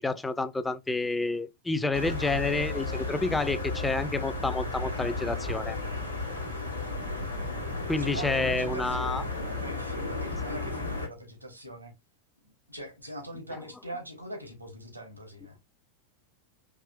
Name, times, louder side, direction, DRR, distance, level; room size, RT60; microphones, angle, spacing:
voice 1, 0.0-5.8 7.9-9.2, left 3 dB, 10° left, 0.4 m, -29 dB
sound 1, 1.9-11.1, left 2 dB, 85° left, 1.0 m, -33 dB
voice 2, 8.0-11.9 12.7-15.6, equal, 85° right, 1.1 m, -42 dB
4.7 x 2.9 x 2.2 m
figure-of-eight pair, 90°, 0 cm